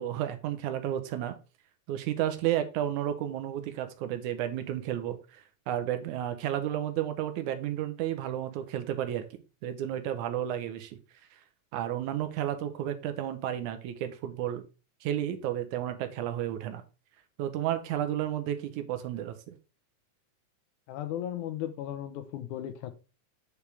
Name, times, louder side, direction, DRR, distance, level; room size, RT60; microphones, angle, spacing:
voice 1, 0.0-1.4 1.9-9.3 9.6-11.0 11.7-14.6 15.0-16.8 17.4-19.6, right 11 dB, 80° right, 2.2 m, -32 dB
voice 2, 20.9-22.9, left 11 dB, 80° left, 2.3 m, -36 dB
8.2 x 4.9 x 3.3 m
omnidirectional pair, 3.5 m